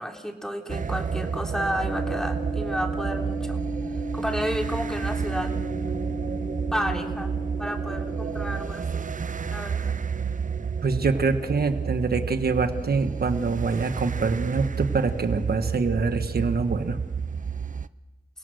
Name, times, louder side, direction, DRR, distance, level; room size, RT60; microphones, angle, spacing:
voice 1, 0.0-3.6 4.1-5.5 6.7-7.3 7.6-9.1 9.5-9.9, equal, 5° left, 2 dB, 3.7 m, -31 dB
sound 1, 0.7-17.9, right 6 dB, 55° right, 0.7 m, -31 dB
sound 2, 1.8-8.6, right 1 dB, 60° left, 7.1 m, -34 dB
voice 2, 10.8-17.0, right 4 dB, 75° right, 8 dB, 1.5 m, -25 dB
30.0 x 17.5 x 6.4 m, 1.2 s
cardioid pair, 45°, 16 cm